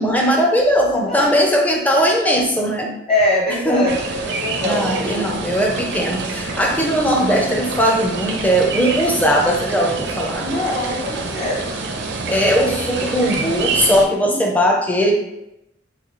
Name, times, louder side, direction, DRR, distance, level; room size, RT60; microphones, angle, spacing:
voice 1, 0.0-2.9 3.7-3.9 4.6-10.5 12.3-15.1, equal, 10° left, -1 dB, 0.5 m, -18 dB
voice 2, 1.1-1.4 3.1-5.3 10.4-11.6 14.3-14.8, left 1 dB, 30° left, -6 dB, 1.1 m, -23 dB
sound 1, 3.9-14.1, right 3 dB, 60° right, 0.4 m, -27 dB
3.8 x 2.3 x 3.0 m, 0.87 s
head